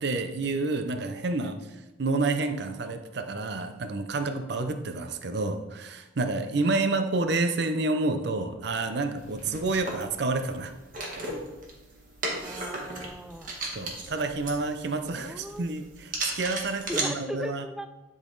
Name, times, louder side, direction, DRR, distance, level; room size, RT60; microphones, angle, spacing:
voice 1, 0.0-1.6 2.0-10.7 11.1-11.3 13.7-17.6, right 3 dB, 60° right, 8 dB, 0.6 m, -29 dB
sound 1, 9.2-17.1, right 2 dB, 45° right, 1.5 m, -36 dB
voice 2, 12.3-13.5 15.1-15.7 16.7-17.9, right 1 dB, 5° right, 8 dB, 0.3 m, -38 dB
10.0 x 4.0 x 3.9 m, 1.1 s
head